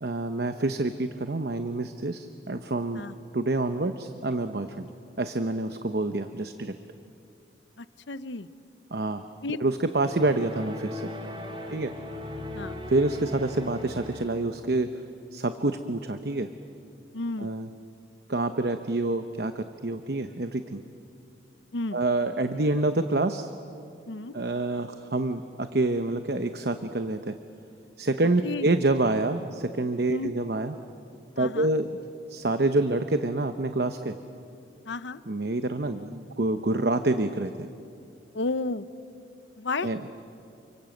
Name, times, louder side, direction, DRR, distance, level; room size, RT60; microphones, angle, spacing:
voice 1, 0.0-3.0 3.3-4.9 5.2-6.7 8.9-9.2 9.6-11.1 11.7-11.9 12.9-14.9 15.3-16.5 17.4-17.7 18.3-20.8 21.9-23.5 24.3-27.4 28.0-30.7 31.4-31.9 32.3-34.2 35.3-37.7 39.8-40.0, right 2 dB, 60° right, 8 dB, 0.9 m, -27 dB
voice 2, 7.8-8.5 9.4-9.6 11.7-12.2 12.5-12.8 17.1-17.5 21.7-22.0 24.1-24.3 28.4-28.7 30.1-30.3 31.4-31.7 34.8-35.2 38.3-38.9 39.6-39.9, left 3 dB, 85° left, 14 dB, 0.8 m, -33 dB
sound 1, 9.9-14.5, left 1 dB, 30° right, 2.7 m, -38 dB
29.0 x 25.0 x 7.9 m, 2.6 s
head